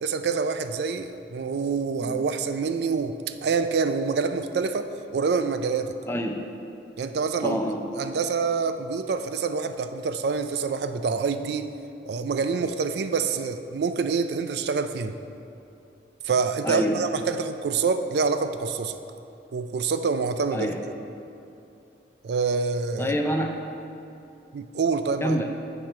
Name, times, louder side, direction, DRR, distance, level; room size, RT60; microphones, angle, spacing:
voice 1, 0.0-4.9 5.1-5.9 7.0-7.6 8.0-11.7 12.1-15.1 16.2-19.0 19.5-20.7 22.2-23.1 24.5-25.4, right 5 dB, 65° right, 9 dB, 0.3 m, -26 dB
voice 2, 6.1-6.4 7.4-7.8 16.6-17.0 20.5-20.7 23.0-23.6 25.2-25.5, equal, 15° left, 3 dB, 0.4 m, -26 dB
7.4 x 4.5 x 6.4 m, 2.7 s
head